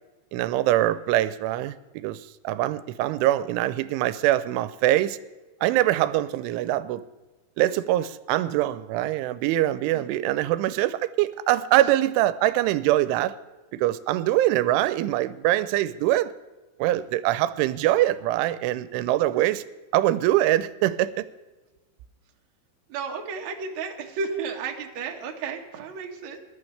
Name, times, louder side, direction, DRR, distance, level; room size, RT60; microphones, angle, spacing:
voice 1, 0.3-5.2 5.6-7.0 7.6-13.3 13.7-16.3 16.8-19.6 19.9-21.2, right 14 dB, 90° right, 15 dB, 3.1 m, -23 dB
voice 2, 22.9-26.4, right 5 dB, 60° right, 2 dB, 1.9 m, -33 dB
21.5 x 12.0 x 3.3 m, 1.2 s
omnidirectional pair, 5.5 m